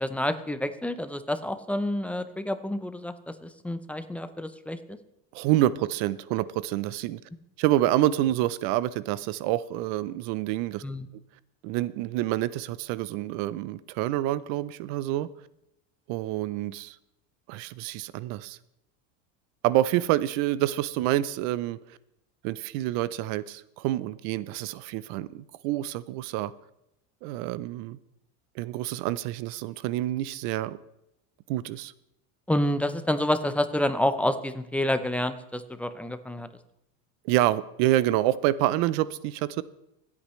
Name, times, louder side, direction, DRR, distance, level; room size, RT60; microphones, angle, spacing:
voice 1, 0.0-3.1 3.4-5.0 10.8-11.1 32.5-36.5, left 1 dB, 5° left, 10 dB, 0.5 m, -28 dB
voice 2, 5.3-7.2 7.6-10.8 11.6-15.3 16.1-17.0 17.5-18.6 19.6-21.8 22.4-26.5 27.2-28.0 28.6-30.8 31.5-31.9 37.2-39.6, right 14 dB, 70° right, 18 dB, 0.7 m, -27 dB
25.5 x 8.6 x 3.2 m, 0.85 s
cardioid pair, 135°, 40 cm